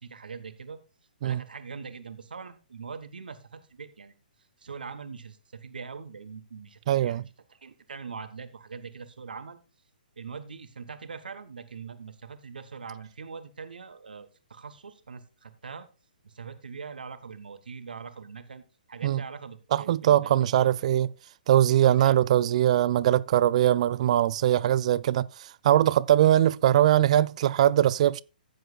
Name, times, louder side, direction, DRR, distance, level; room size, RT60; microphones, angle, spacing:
voice 1, 0.0-0.8 1.2-4.1 4.6-7.2 7.5-9.6 10.2-15.9 16.2-18.6 18.9-20.7 21.7-22.2 22.4-22.5, right 5 dB, 70° right, 1.3 m, -42 dB
voice 2, 6.9-7.2 19.0-19.2 19.7-21.1 21.5-28.2, right 12 dB, 45° right, 0.4 m, -21 dB
15.0 x 7.8 x 2.4 m
figure-of-eight pair, 130°, 5 cm